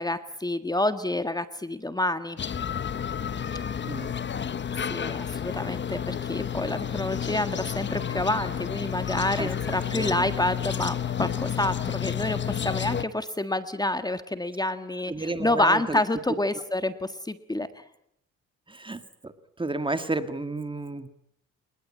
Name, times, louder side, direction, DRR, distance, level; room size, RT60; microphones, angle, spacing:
voice 1, 0.0-2.4 4.9-17.8, left 1 dB, 15° left, 10 dB, 1.6 m, -28 dB
sound 1, 2.4-13.0, left 8 dB, 35° left, 1.1 m, -31 dB
voice 2, 9.9-10.3 15.1-16.0 18.7-19.3 19.6-21.1, right 2 dB, 15° right, 10 dB, 1.9 m, -32 dB
30.0 x 19.5 x 8.7 m, 0.77 s
cardioid pair, 90°, 30 cm